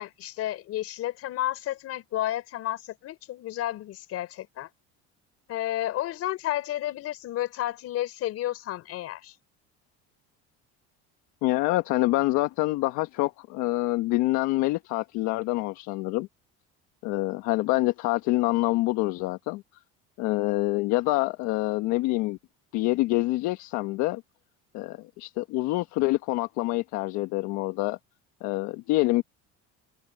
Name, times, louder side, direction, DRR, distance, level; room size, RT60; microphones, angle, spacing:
voice 1, 0.0-4.7 5.5-9.3, left 13 dB, 55° left, 4.9 m, -31 dB
voice 2, 11.4-16.3 17.0-19.6 20.2-22.4 22.7-24.2 24.7-28.0 28.4-29.2, left 19 dB, 75° left, 1.4 m, -26 dB
cardioid pair, 135°, 29 cm